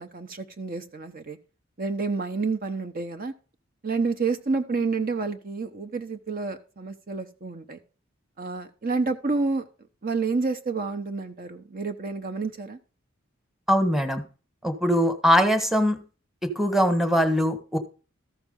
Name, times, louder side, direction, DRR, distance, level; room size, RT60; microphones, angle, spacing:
voice 1, 0.0-1.4 1.8-3.3 3.8-7.8 8.4-9.6 10.0-12.8, right 4 dB, 45° right, 1.0 m, -29 dB
voice 2, 13.7-14.2 14.6-16.0 16.4-17.8, equal, ahead, 1.3 m, -22 dB
13.5 x 6.0 x 5.3 m
head